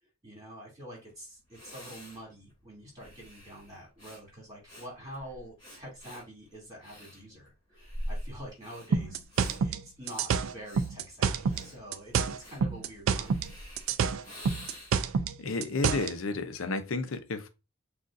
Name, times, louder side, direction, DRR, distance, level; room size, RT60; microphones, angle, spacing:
voice 1, 0.2-9.2 9.6-13.4, equal, 20° right, 2.6 m, -46 dB
Breathing, 1.1-1.2 1.5-15.1, equal, 20° left, 2.6 m, -45 dB
sound 1, 8.9-11.7 11.9-13.5 13.8-16.1, right 6 dB, 70° right, 0.3 m, -28 dB
voice 2, 15.4-17.5, left 3 dB, 70° left, 0.6 m, -32 dB
6.5 x 2.5 x 2.5 m
head